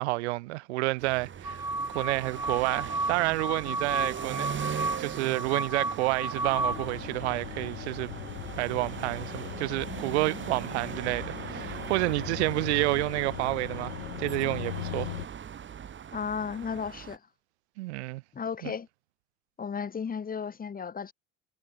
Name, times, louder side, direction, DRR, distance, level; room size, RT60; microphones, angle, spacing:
voice 1, 0.0-1.6 1.9-4.5 5.0-8.1 8.6-15.1 17.8-18.2 18.6-18.7, right 22 dB, 70° right, 1.1 m, -29 dB
Street Side, 1.0-17.2, right 8 dB, 35° right, 3.3 m, -40 dB
sound 1, 1.4-6.9, right 2 dB, 10° right, 3.7 m, -33 dB
sound 2, 6.4-15.3, left 20 dB, 70° left, 3.9 m, -40 dB
voice 2, 16.1-17.2 18.3-18.9 19.6-21.1, left 6 dB, 25° left, 2.0 m, -34 dB
hypercardioid pair, 75°, 35 cm